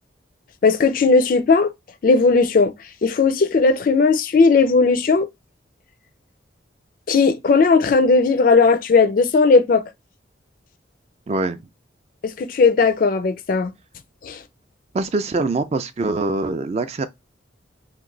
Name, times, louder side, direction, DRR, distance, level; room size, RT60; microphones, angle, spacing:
voice 1, 0.6-1.7 2.0-2.7 3.0-5.3 7.1-9.8 12.2-13.7 14.2-14.4, left 4 dB, 45° left, 0.3 m, -16 dB
voice 2, 11.3-11.6 14.9-17.1, right 3 dB, 35° right, 0.3 m, -23 dB
3.0 x 2.5 x 3.8 m
head